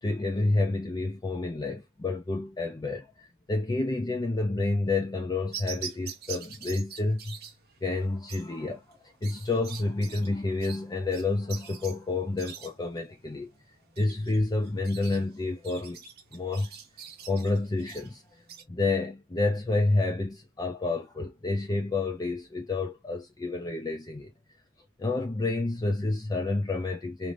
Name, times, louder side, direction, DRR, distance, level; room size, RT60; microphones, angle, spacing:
voice 1, 0.0-7.5 7.8-13.5 14.0-16.0 16.3-16.7 17.3-18.4 18.7-24.3 25.0-27.3, left 2 dB, 20° left, 0.4 m, -29 dB
sound 1, 5.5-18.6, right 8 dB, 45° right, 0.8 m, -44 dB
2.5 x 2.5 x 3.2 m
head